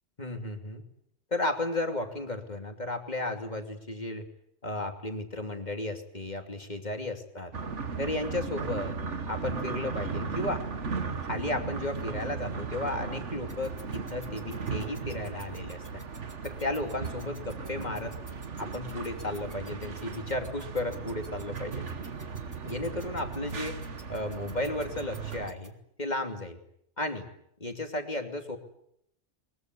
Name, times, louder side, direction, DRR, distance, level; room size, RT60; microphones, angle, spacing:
voice 1, 0.2-0.8 1.3-4.3 4.6-7.5 8.0-9.0 9.3-10.6 11.2-16.0 16.4-18.2 18.6-21.9 22.6-23.8 24.1-26.6 27.0-27.3 27.6-28.6, left 2 dB, 35° left, 5 dB, 3.0 m, -34 dB
sound 1, 7.5-25.5, right 5 dB, 75° right, 1.9 m, -37 dB
sound 2, 13.5-25.7, right 1 dB, 15° right, 2.5 m, -52 dB
22.5 x 22.0 x 9.5 m, 0.74 s
omnidirectional pair, 1.2 m